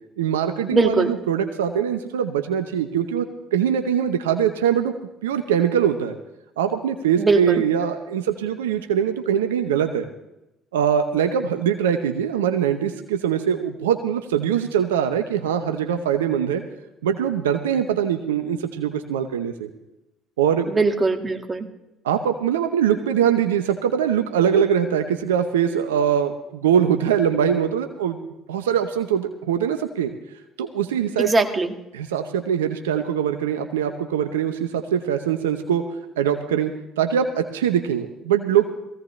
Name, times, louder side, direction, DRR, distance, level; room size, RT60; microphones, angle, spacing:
voice 1, 0.2-4.9 5.2-6.2 6.6-10.1 10.7-16.6 17.0-19.7 20.4-20.7 22.0-28.2 28.5-30.1 30.6-31.3 31.9-35.8 36.2-38.7, right 8 dB, 85° right, 7 dB, 0.8 m, -22 dB
voice 2, 0.7-1.1 7.2-7.6 20.7-21.7 31.2-31.7, right 3 dB, 25° right, 5 dB, 2.0 m, -20 dB
20.0 x 16.0 x 3.2 m, 0.92 s
hypercardioid pair, 55°, 0 cm